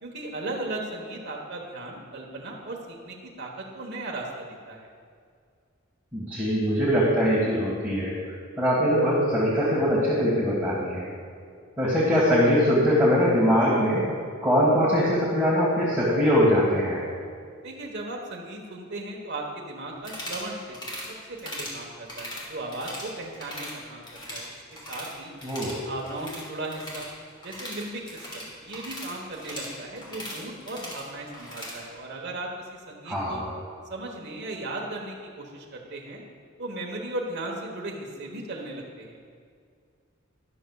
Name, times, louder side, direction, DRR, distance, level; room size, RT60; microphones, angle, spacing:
voice 1, 0.0-4.9 17.6-20.8 21.3-24.0 24.3-24.5 24.9-25.3 25.8-27.1 27.4-33.4 33.9-36.2 36.6-39.2, right 2 dB, 55° right, -1 dB, 1.2 m, -36 dB
voice 2, 6.1-11.1 11.8-14.0 14.4-17.0 25.4-25.8 33.1-33.5, equal, 10° right, -7 dB, 1.7 m, -22 dB
sound 1, 20.0-20.5 20.7-21.1 21.4-21.8 22.1-23.1 23.3-23.7 24.0-25.1 25.4-31.8, left 1 dB, 25° left, 2.7 m, -39 dB
13.0 x 11.0 x 2.3 m, 2.2 s
head